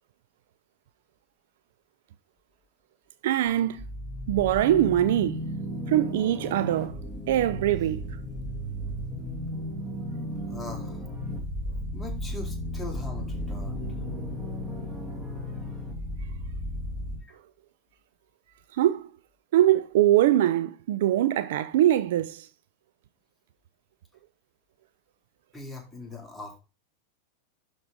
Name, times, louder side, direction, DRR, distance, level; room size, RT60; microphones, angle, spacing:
voice 1, 3.2-3.9 4.3-5.4 5.9-6.9 7.3-8.0 18.7-19.1 19.5-22.5, right 12 dB, 55° right, 0.5 m, -23 dB
sound 1, 3.5-17.2, equal, 20° right, 2.4 m, -34 dB
voice 2, 10.5-11.1 11.9-13.8 25.5-26.6, left 2 dB, ahead, 2.2 m, -40 dB
11.5 x 3.9 x 3.6 m
figure-of-eight pair, 90°, 0 cm